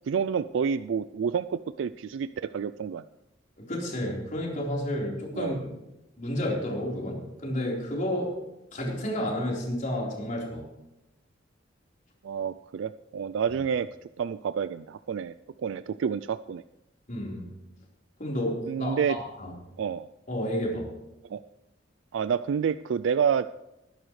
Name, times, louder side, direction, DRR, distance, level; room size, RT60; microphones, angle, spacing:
voice 1, 0.1-3.0 5.3-5.6 12.2-13.9 14.2-16.6 18.7-19.2 19.8-20.1 21.3-21.4 22.1-23.5, right 7 dB, 75° right, 14 dB, 0.3 m, -29 dB
voice 2, 3.6-5.7 6.2-8.3 8.7-10.6 17.1-17.5 18.2-19.5 20.3-20.9, left 1 dB, 45° left, -2 dB, 4.1 m, -31 dB
21.0 x 11.0 x 3.2 m, 0.93 s
head